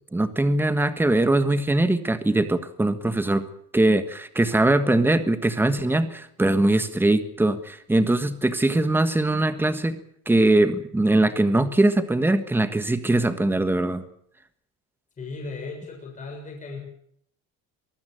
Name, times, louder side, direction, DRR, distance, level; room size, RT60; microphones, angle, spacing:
voice 1, 0.1-3.5 3.7-10.0 10.3-14.0, right 2 dB, 5° right, 11 dB, 1.4 m, -21 dB
voice 2, 15.2-16.8, left 3 dB, 20° left, 1 dB, 6.9 m, -36 dB
23.5 x 15.0 x 9.1 m, 0.69 s
cardioid pair, 155°, 37 cm